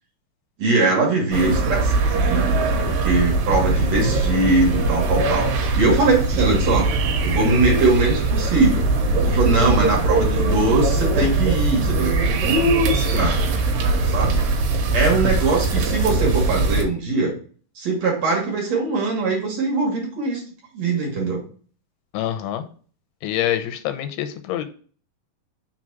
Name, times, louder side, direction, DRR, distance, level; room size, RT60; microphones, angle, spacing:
voice 1, 0.6-2.5 2.8-6.9 7.2-8.9 9.2-12.1 12.4-13.5 14.1-14.4 14.9-17.3 17.8-20.4 20.7-21.4, right 3 dB, 50° right, -1 dB, 2.6 m, -21 dB
sound 1, 1.3-16.8, right 2 dB, 65° right, 2.8 m, -21 dB
voice 2, 22.1-22.7 23.2-24.6, left 11 dB, 90° left, 8 dB, 2.7 m, -25 dB
6.3 x 4.1 x 6.0 m, 0.42 s
omnidirectional pair, 4.5 m